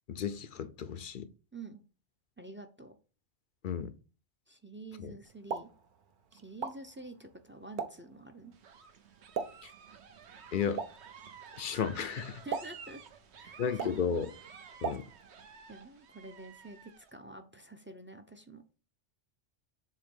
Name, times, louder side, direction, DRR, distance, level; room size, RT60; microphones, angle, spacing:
voice 1, 0.1-1.3 3.6-3.9 5.0-5.1 9.6-9.7 10.5-10.8 11.6-12.4 13.6-14.3 14.8-15.0, left 7 dB, 55° left, 0.6 m, -33 dB
voice 2, 1.5-1.8 2.4-2.9 4.5-5.7 6.3-8.5 12.4-13.0 13.3-14.3 15.7-18.6, right 2 dB, 15° right, 0.5 m, -48 dB
Explosion, 5.2-15.5, right 6 dB, 50° right, 0.8 m, -43 dB
sound 1, 8.5-17.1, right 6 dB, 70° right, 1.1 m, -53 dB
7.5 x 2.9 x 5.4 m
omnidirectional pair, 1.2 m